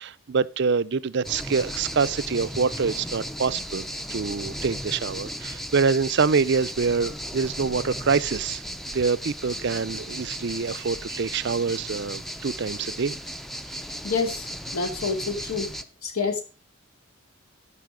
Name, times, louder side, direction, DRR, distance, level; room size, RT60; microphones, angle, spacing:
voice 1, 0.0-3.8 4.1-8.6 8.9-13.2, right 5 dB, 55° right, 0.5 m, -25 dB
sound 1, 1.2-15.8, equal, ahead, 0.5 m, -35 dB
voice 2, 14.0-15.7 16.0-16.4, left 4 dB, 85° left, 2.8 m, -28 dB
14.0 x 5.6 x 5.1 m
head